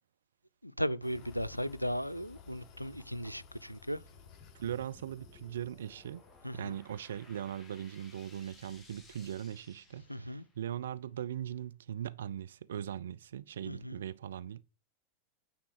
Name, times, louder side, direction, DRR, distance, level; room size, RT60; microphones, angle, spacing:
voice 1, 0.6-4.0 6.4-6.7 10.1-10.4 13.7-14.0, equal, 90° left, 0.4 m, -36 dB
sound 1, 1.0-7.9, left 6 dB, 40° left, 5.7 m, -56 dB
sound 2, 4.4-10.7, left 2 dB, 10° left, 3.1 m, -59 dB
voice 2, 4.5-6.2 6.5-14.6, right 10 dB, 65° right, 0.5 m, -40 dB
9.4 x 4.2 x 7.4 m
figure-of-eight pair, 90°, 0 cm